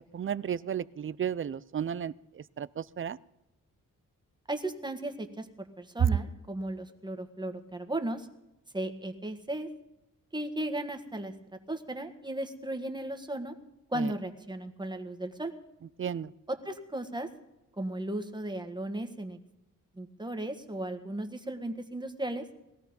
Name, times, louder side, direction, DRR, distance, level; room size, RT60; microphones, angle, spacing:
voice 1, 0.1-2.1 2.6-3.2 14.0-14.1 16.0-16.3, right 8 dB, 40° right, 18 dB, 0.5 m, -33 dB
voice 2, 4.5-8.3 8.7-9.7 10.3-11.3 11.7-13.5 13.9-15.5 16.5-17.3 17.8-19.4 20.0-22.4, right 1 dB, 15° right, 6 dB, 1.7 m, -35 dB
19.5 x 13.5 x 5.3 m, 0.93 s
cardioid pair, 80°, 33 cm